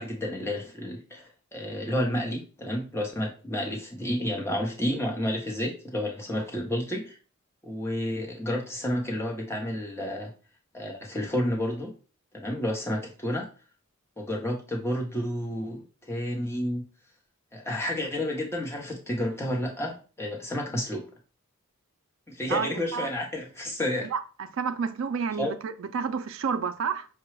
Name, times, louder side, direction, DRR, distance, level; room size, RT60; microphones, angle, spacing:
voice 1, 0.0-7.2 7.6-10.3 10.7-11.9 12.3-13.5 14.2-16.8 17.5-21.1 22.3-24.1 25.4-25.5, left 1 dB, 10° left, 0.8 m, -30 dB
voice 2, 22.5-23.1 24.1-24.2 24.5-27.1, right 6 dB, 60° right, 0.3 m, -30 dB
5.7 x 2.2 x 3.1 m
head